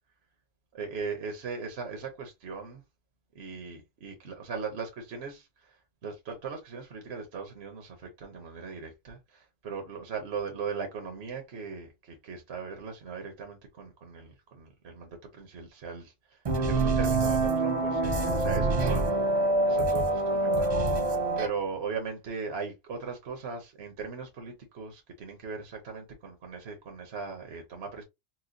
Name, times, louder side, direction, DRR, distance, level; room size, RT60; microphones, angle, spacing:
voice 1, 0.7-2.8 3.3-5.8 6.0-19.1 19.7-20.7 21.0-28.0, right 5 dB, 55° right, 1.0 m, -39 dB
sound 1, 16.4-21.5, right 2 dB, 40° right, 0.5 m, -26 dB
4.3 x 2.2 x 2.6 m
omnidirectional pair, 1.4 m